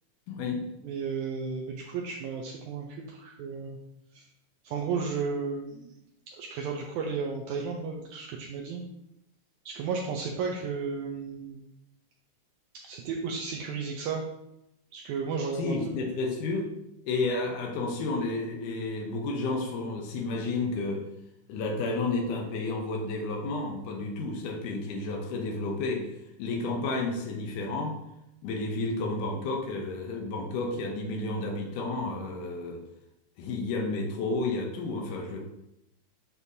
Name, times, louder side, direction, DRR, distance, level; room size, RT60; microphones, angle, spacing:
voice 1, 0.3-0.6 15.5-16.7 17.0-21.0 21.5-26.1 26.4-27.9 28.4-32.8 33.4-35.4, left 3 dB, 90° left, 1 dB, 2.4 m, -31 dB
voice 2, 0.8-3.8 4.1-4.2 4.6-5.9 6.4-8.8 9.7-11.6 12.8-14.2 14.9-15.8, right 5 dB, 80° right, 0 dB, 2.0 m, -33 dB
7.1 x 6.2 x 2.7 m, 0.84 s
omnidirectional pair, 3.6 m